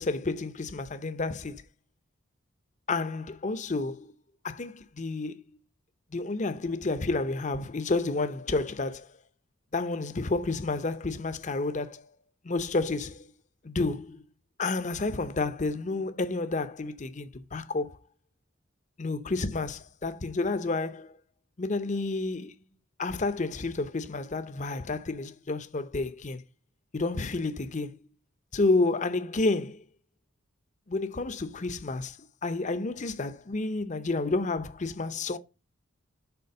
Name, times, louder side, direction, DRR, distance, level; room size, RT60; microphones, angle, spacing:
voice 1, 0.0-1.6 2.9-4.1 4.4-5.4 6.1-9.1 9.7-12.0 12.4-13.3 13.6-14.2 14.6-18.0 19.0-21.2 21.6-22.5 23.0-26.4 26.9-28.0 28.5-29.8 30.9-35.4, left 3 dB, 35° left, 0.7 m, -30 dB
6.9 x 4.4 x 6.6 m
head